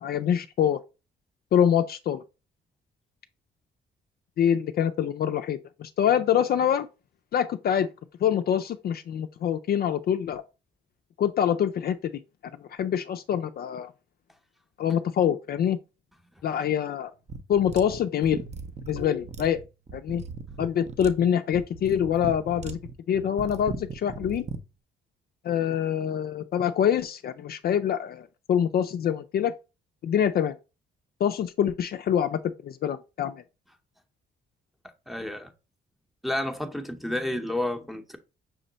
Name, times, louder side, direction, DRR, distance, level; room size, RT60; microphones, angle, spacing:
voice 1, 0.0-0.8 1.5-2.2 4.4-6.9 7.3-7.9 8.2-10.4 11.2-12.0 12.6-13.9 14.8-15.8 16.4-17.1 17.5-18.4 18.9-19.6 19.9-20.2 20.6-22.8 23.1-24.4 25.4-29.5 30.0-30.5 31.2-33.4, left 9 dB, 50° left, 0.4 m, -25 dB
sound 1, 17.3-24.6, right 5 dB, 35° right, 0.6 m, -38 dB
voice 2, 35.1-35.5 36.2-38.2, left 1 dB, ahead, 0.7 m, -30 dB
6.1 x 2.1 x 3.9 m
cardioid pair, 90°, 20 cm